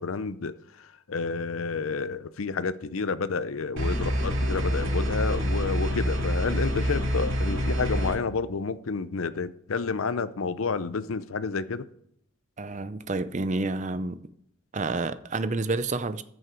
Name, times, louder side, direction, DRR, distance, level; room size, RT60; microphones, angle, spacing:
voice 1, 0.0-11.9, left 4 dB, 90° left, 0.6 m, -30 dB
sound 1, 3.8-8.2, equal, 80° right, 2.5 m, -26 dB
voice 2, 12.6-14.2 14.7-16.2, right 3 dB, 35° right, 0.6 m, -29 dB
14.0 x 6.4 x 4.5 m
head